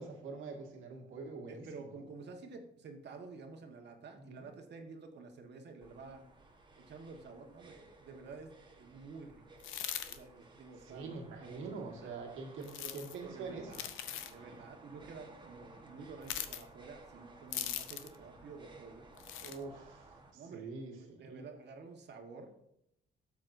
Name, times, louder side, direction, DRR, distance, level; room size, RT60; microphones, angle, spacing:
voice 1, 0.0-2.1 4.1-4.5 10.8-13.9 19.4-21.5, right 4 dB, 90° right, 0 dB, 1.9 m, -45 dB
voice 2, 1.5-6.2 6.8-9.5 10.1-12.2 12.8-12.9 13.2-13.9 14.3-19.1 20.3-22.5, right 4 dB, 60° right, 4 dB, 1.4 m, -50 dB
sound 1, 5.8-20.3, right 2 dB, 25° right, 1.3 m, -57 dB
sound 2, 9.6-10.2 12.6-13.2 13.7-14.3 16.2-16.6 17.5-18.2 19.2-19.6, left 11 dB, 85° left, 0.7 m, -40 dB
12.0 x 7.4 x 2.7 m, 0.78 s
cardioid pair, 90°, 20 cm